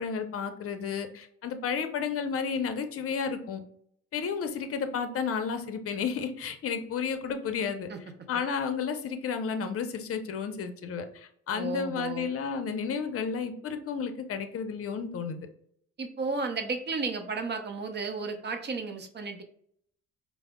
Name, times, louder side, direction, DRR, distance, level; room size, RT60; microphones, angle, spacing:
voice 1, 0.0-3.6 4.1-7.9 8.3-15.5, left 6 dB, 50° left, 8 dB, 0.6 m, -32 dB
voice 2, 11.5-12.3 16.0-19.4, right 4 dB, 35° right, 6 dB, 0.6 m, -33 dB
4.7 x 2.0 x 2.2 m, 0.66 s
cardioid pair, 90°, 30 cm